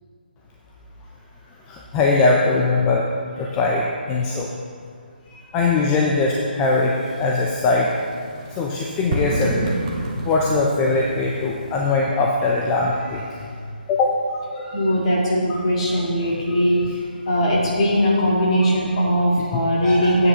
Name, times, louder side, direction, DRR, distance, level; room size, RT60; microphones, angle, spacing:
voice 1, 1.7-3.1 3.4-3.8 4.1-4.5 5.3-7.9 8.5-9.7 10.2-13.4 13.9-14.1 14.5-14.8 15.2-15.6 19.4-19.5, left 3 dB, 15° left, -2 dB, 0.5 m, -21 dB
sound 1, 6.6-11.8, right 1 dB, 30° right, 1.0 m, -29 dB
voice 2, 14.7-16.8 17.3-20.3, equal, 40° left, -5 dB, 2.6 m, -19 dB
13.0 x 9.3 x 2.9 m, 2.2 s
hypercardioid pair, 160°, 5 cm